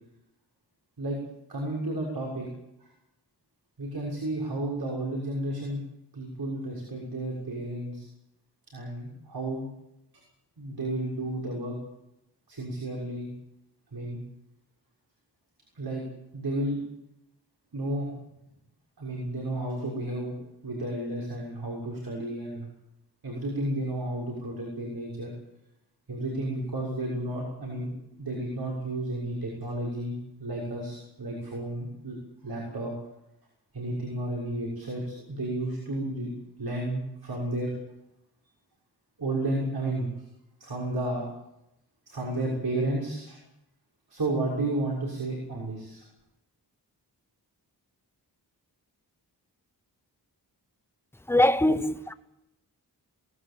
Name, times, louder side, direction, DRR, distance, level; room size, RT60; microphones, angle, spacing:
voice 1, 1.5-2.5 3.8-5.8 6.1-8.1 8.7-9.7 10.6-11.8 12.5-13.3 13.9-14.2 15.8-16.0 16.3-16.8 17.7-18.1 19.0-20.3 20.6-22.7 23.2-25.3 26.1-27.9 28.1-32.2 32.4-32.9 33.7-36.3 36.6-37.7 39.2-40.1 40.6-41.2 42.1-43.4 44.1-46.0 51.7-51.8, right 1 dB, 65° right, 6.6 m, -32 dB
voice 2, 51.3-52.1, left 1 dB, 5° left, 0.8 m, -22 dB
23.0 x 19.0 x 8.7 m
wide cardioid pair, 110°, 41 cm